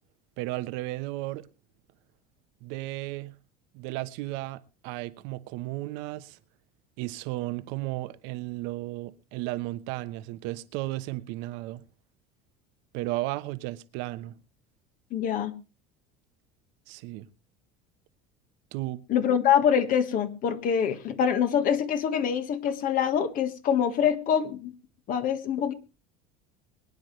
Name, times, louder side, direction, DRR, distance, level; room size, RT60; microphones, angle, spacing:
voice 1, 0.4-1.5 2.6-3.3 3.7-6.4 7.0-11.8 12.9-14.3 16.9-17.3 18.7-19.0, right 18 dB, 70° right, 1.2 m, -34 dB
voice 2, 15.1-15.5 19.1-24.7 25.1-25.7, left 8 dB, 45° left, 1.6 m, -25 dB
23.5 x 9.8 x 3.2 m
cardioid pair, 140°, 19 cm